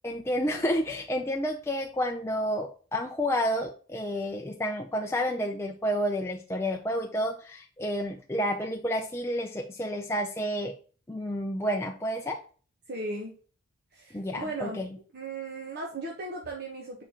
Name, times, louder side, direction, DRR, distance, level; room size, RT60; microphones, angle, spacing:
voice 1, 0.0-10.7 11.1-12.4 14.1-14.9, equal, 10° left, 2 dB, 0.4 m, -30 dB
voice 2, 12.9-13.3 13.9-14.8 15.1-17.0, right 2 dB, 50° right, -1 dB, 1.0 m, -36 dB
6.8 x 5.1 x 2.9 m, 0.40 s
head